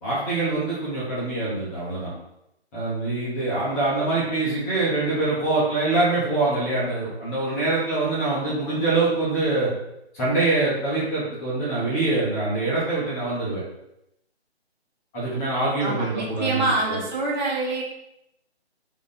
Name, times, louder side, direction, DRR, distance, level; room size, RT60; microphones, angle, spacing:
voice 1, 0.0-2.1 2.7-9.7 10.1-13.6 15.1-17.0, right 2 dB, 15° left, -7 dB, 0.9 m, -24 dB
voice 2, 15.8-17.8, right 2 dB, 45° right, -4 dB, 1.6 m, -25 dB
3.6 x 3.2 x 4.1 m, 0.83 s
figure-of-eight pair, 145°, 33 cm